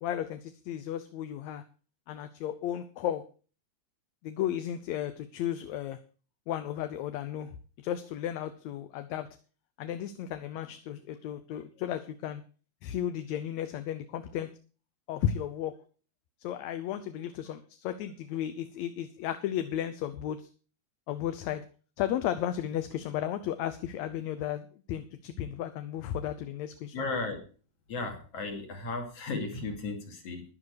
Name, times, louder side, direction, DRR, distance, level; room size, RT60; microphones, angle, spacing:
voice 1, 0.0-1.6 2.1-3.2 4.2-6.0 6.5-9.3 9.8-12.4 12.8-14.5 15.1-15.8 16.4-20.5 21.1-21.6 22.0-27.0, left 10 dB, 75° left, 10 dB, 2.1 m, -34 dB
voice 2, 26.9-27.4 27.9-30.4, left 3 dB, 55° left, 3 dB, 3.6 m, -35 dB
11.5 x 11.0 x 4.8 m, 0.38 s
omnidirectional pair, 3.4 m